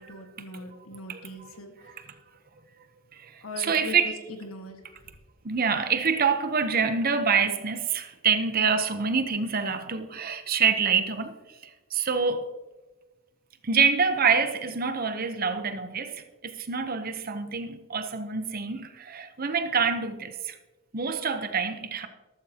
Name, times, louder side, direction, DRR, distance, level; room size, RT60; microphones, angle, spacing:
voice 1, 0.0-1.9 3.4-4.8, left 2 dB, 70° left, 1.7 m, -40 dB
voice 2, 3.6-4.2 5.4-11.3 11.9-12.5 13.6-16.1 16.4-20.3 20.9-22.1, right 5 dB, 40° right, 0.8 m, -26 dB
13.5 x 13.5 x 2.9 m
head